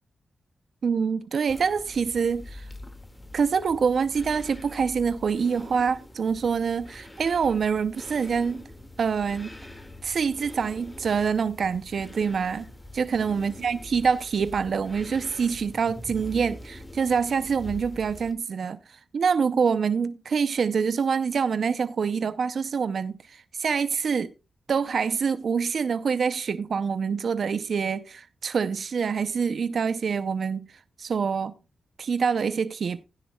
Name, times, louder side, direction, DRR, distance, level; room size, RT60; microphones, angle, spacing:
voice 1, 0.8-2.7 3.3-8.6 9.0-9.5 10.0-12.7 12.9-24.3 24.7-30.7 31.0-31.5 32.0-33.0, right 6 dB, 70° right, 0.5 m, -26 dB
sound 1, 1.5-18.3, left 1 dB, 20° left, 1.9 m, -44 dB
16.0 x 10.0 x 2.3 m
cardioid pair, 55°, 0 cm